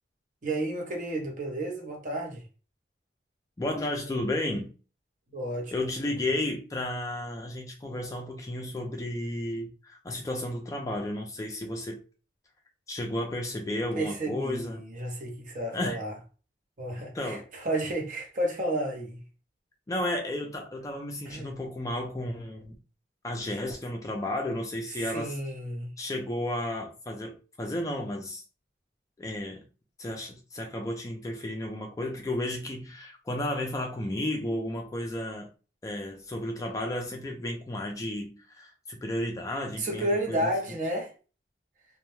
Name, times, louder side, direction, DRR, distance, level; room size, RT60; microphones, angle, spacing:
voice 1, 0.4-2.4 5.3-5.7 14.0-16.1 16.8-19.2 21.3-21.5 25.0-25.9 39.8-41.1, right 1 dB, 45° right, 0.7 m, -31 dB
voice 2, 3.6-4.7 5.7-12.0 12.9-14.8 15.7-16.0 17.1-17.5 19.9-22.8 23.2-25.4 26.0-28.4 29.2-29.6 30.0-35.5 35.8-40.5, left 1 dB, 20° left, 0.3 m, -33 dB
2.1 x 2.0 x 2.9 m
head